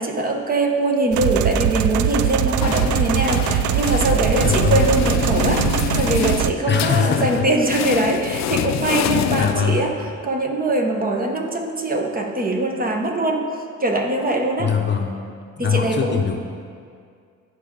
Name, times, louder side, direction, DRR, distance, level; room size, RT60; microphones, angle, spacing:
voice 1, 0.0-9.9 10.2-13.5 13.8-14.7 15.6-16.2, right 2 dB, 30° right, 2 dB, 1.1 m, -22 dB
sound 1, 1.1-6.5, right 10 dB, 75° right, 0.5 m, -21 dB
sound 2, 2.2-10.2, left 11 dB, 65° left, 0.4 m, -26 dB
voice 2, 4.4-4.8 6.7-7.5 9.3-9.8 14.6-15.1 15.6-16.4, left 6 dB, 35° left, 3 dB, 0.8 m, -21 dB
14.5 x 5.0 x 3.8 m, 2.2 s
cardioid pair, 90°, 30 cm